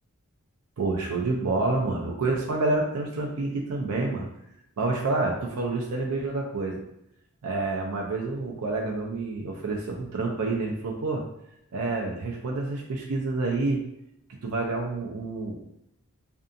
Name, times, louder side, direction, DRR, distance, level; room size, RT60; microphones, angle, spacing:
voice 1, 0.8-4.3 4.8-6.8 7.4-11.2 11.7-13.8 14.4-15.6, right 3 dB, 85° right, -1 dB, 0.5 m, -28 dB
2.6 x 2.3 x 2.5 m, 0.80 s
head